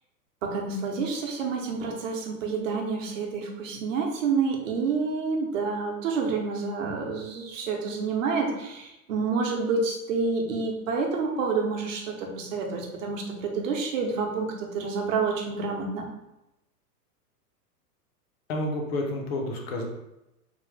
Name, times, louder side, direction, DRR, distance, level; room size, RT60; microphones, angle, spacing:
voice 1, 0.4-16.1, right 4 dB, 55° right, 1 dB, 0.8 m, -28 dB
voice 2, 18.5-19.8, left 1 dB, 40° left, 1 dB, 0.6 m, -30 dB
3.5 x 2.1 x 3.2 m, 0.91 s
hypercardioid pair, 150°, 47 cm